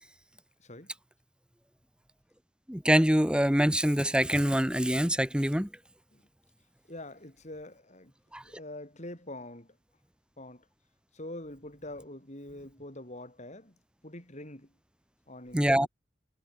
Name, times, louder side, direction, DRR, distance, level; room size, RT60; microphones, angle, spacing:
voice 1, 0.6-0.9 6.1-6.2 6.9-8.1 8.4-9.8 10.4-10.7 11.1-13.8 14.0-14.7 15.3-15.9, left 1 dB, 40° left, 7.5 m, -44 dB
voice 2, 2.7-5.7 8.3-8.4 15.5-15.9, equal, 5° right, 2.3 m, -25 dB
head